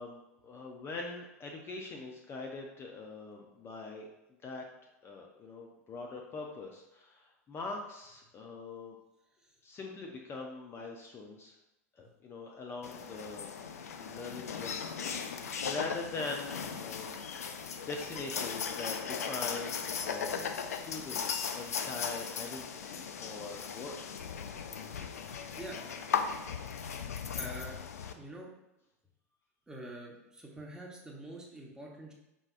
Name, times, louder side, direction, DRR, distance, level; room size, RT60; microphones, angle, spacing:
voice 1, 0.0-4.1 4.4-4.6 5.0-9.0 9.6-11.5 12.0-13.5 14.0-17.2 17.7-24.0, left 3 dB, 30° left, 1 dB, 0.6 m, -43 dB
sound 1, 12.8-28.1, left 6 dB, 80° left, 0.4 m, -37 dB
voice 2, 25.5-25.9 27.0-27.8 28.1-28.5 29.7-32.1, right 1 dB, 10° right, -2 dB, 1.1 m, -46 dB
5.2 x 3.3 x 2.5 m, 0.91 s
hypercardioid pair, 90°, 8 cm